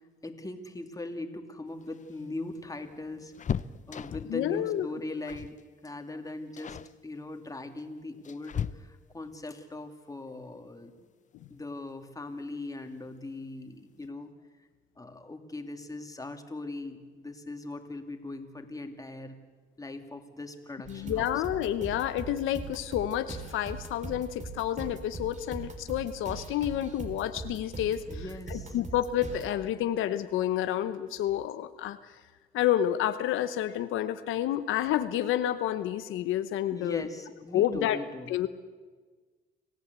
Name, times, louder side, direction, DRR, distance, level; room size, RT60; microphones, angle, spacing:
voice 1, 0.2-3.3 3.9-11.1 11.5-14.3 15.0-19.4 19.8-21.4 28.1-28.8 36.7-38.4, left 2 dB, 15° left, 5 dB, 2.5 m, -40 dB
sound 1, 1.8-4.5 5.2-5.6 5.9-6.1 6.6-6.9 7.8-9.2 11.0-11.1 11.5-11.6 12.7-13.2 13.5-13.6 13.9-14.1, left 8 dB, 40° left, 0.6 m, -37 dB
voice 2, 4.3-4.9 20.9-28.2 28.5-32.0 32.5-37.1 37.5-38.0 38.3-38.5, left 12 dB, 90° left, 11 dB, 0.9 m, -29 dB
sound 2, 20.8-29.5, right 3 dB, 35° right, 3.6 m, -41 dB
26.5 x 15.5 x 8.2 m, 1.4 s
cardioid pair, 90°, 20 cm